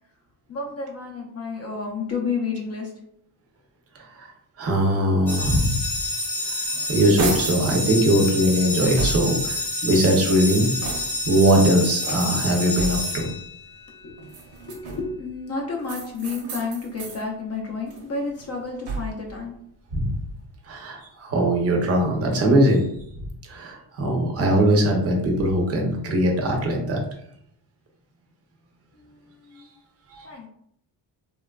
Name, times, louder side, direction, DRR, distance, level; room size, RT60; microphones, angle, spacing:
voice 1, 0.5-2.9 14.0-14.2 14.7-19.5 28.9-29.8 30.2-30.5, left 4 dB, 35° left, 0 dB, 0.5 m, -31 dB
voice 2, 3.9-4.3 4.6-5.8 6.9-10.7 11.3-13.3 19.9-20.1 20.6-22.9 23.5-27.0 30.1-30.3, right 1 dB, 35° right, 1 dB, 0.6 m, -21 dB
sound 1, 5.3-13.9, left 1 dB, 5° left, 0.7 m, -28 dB
sound 2, 6.4-7.7 8.3-9.5 10.1-11.4 12.0-13.3 14.2-15.2 15.8-17.2 17.7-19.3, right 3 dB, 70° right, 0.8 m, -34 dB
3.1 x 2.3 x 2.2 m, 0.71 s
cardioid pair, 150°, 43 cm